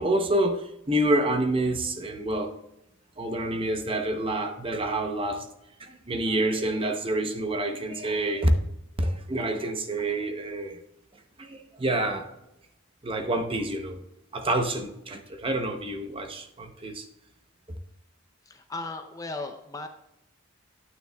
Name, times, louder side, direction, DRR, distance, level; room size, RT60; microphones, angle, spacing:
voice 1, 0.0-2.5 3.2-5.5 5.8-8.5 9.0-10.8 11.4-12.3 13.0-14.0 14.3-17.1, right 1 dB, 25° right, 6 dB, 0.7 m, -28 dB
voice 2, 18.4-19.9, left 3 dB, 15° left, 6 dB, 0.5 m, -36 dB
9.3 x 9.2 x 2.3 m, 0.87 s
head